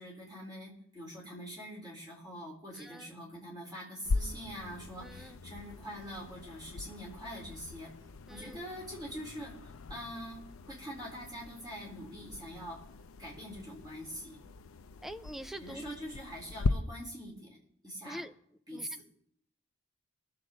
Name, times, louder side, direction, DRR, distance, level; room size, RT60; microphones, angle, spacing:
voice 1, 0.0-7.9 8.3-12.8 13.2-14.4 15.6-17.5 17.8-18.2 18.7-19.1, equal, 20° right, 4.1 m, -44 dB
sound 1, 4.0-16.7, left 3 dB, 90° left, 0.6 m, -40 dB
voice 2, 15.0-15.8 18.1-18.3 18.7-18.9, right 1 dB, ahead, 0.4 m, -44 dB
22.0 x 7.5 x 3.9 m
head